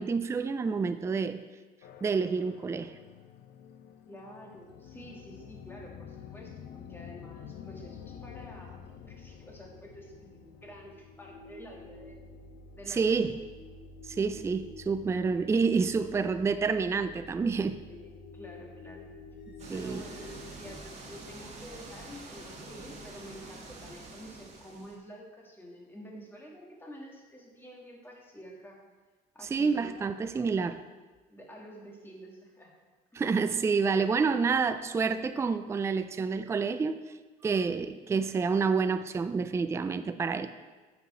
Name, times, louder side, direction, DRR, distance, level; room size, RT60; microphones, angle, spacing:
voice 1, 0.0-1.4 2.0-2.9 12.9-13.3 14.1-17.8 19.7-20.0 29.5-30.8 33.1-37.0 37.4-40.5, right 5 dB, 15° right, 11 dB, 0.3 m, -28 dB
sound 1, 1.8-20.8, left 4 dB, 75° left, 0.7 m, -49 dB
voice 2, 4.1-8.8 9.1-12.2 12.7-13.2 17.9-19.0 19.7-28.8 29.3-30.1 31.3-32.7 33.1-33.2, equal, 15° left, -1 dB, 2.0 m, -49 dB
sound 2, 19.6-25.0, right 2 dB, 40° right, 1.7 m, -46 dB
9.4 x 6.1 x 4.3 m, 1.3 s
cardioid pair, 110°, 17 cm